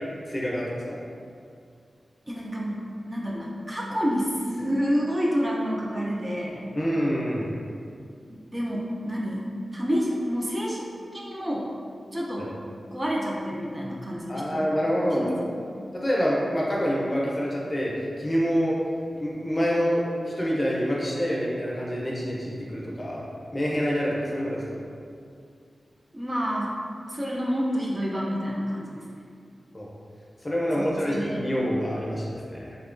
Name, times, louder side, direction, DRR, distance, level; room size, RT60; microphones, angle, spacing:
voice 1, 0.3-1.0 6.7-7.5 14.3-15.2 15.9-18.8 19.1-24.8 29.7-29.9 30.4-32.8, equal, 35° left, -5 dB, 0.6 m, -27 dB
voice 2, 2.3-6.6 8.5-9.5 9.7-10.8 11.1-11.7 12.1-12.5 12.9-14.7 15.1-15.5 26.1-26.8 27.1-29.0 30.8-31.5, equal, 25° right, -4 dB, 0.4 m, -28 dB
2.8 x 2.2 x 2.5 m, 2.3 s
cardioid pair, 55°, 0 cm